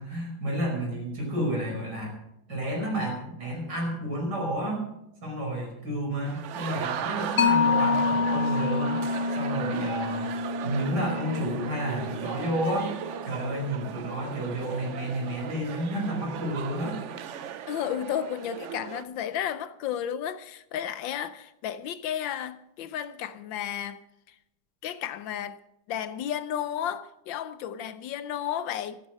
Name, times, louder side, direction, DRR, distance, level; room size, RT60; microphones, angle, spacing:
voice 1, 0.0-2.2 2.5-4.9 5.2-9.0 9.4-10.3 10.6-12.9 13.2-17.0, right 1 dB, 55° right, 5.8 m, -31 dB
sound 1, 6.2-19.0, right 9 dB, 90° right, 0.6 m, -37 dB
Mallet percussion, 7.4-14.4, left 5 dB, 55° left, 1.0 m, -28 dB
voice 2, 17.7-24.3 24.8-25.6 25.9-29.0, left 10 dB, 75° left, 1.4 m, -33 dB
14.0 x 13.0 x 6.3 m
omnidirectional pair, 2.2 m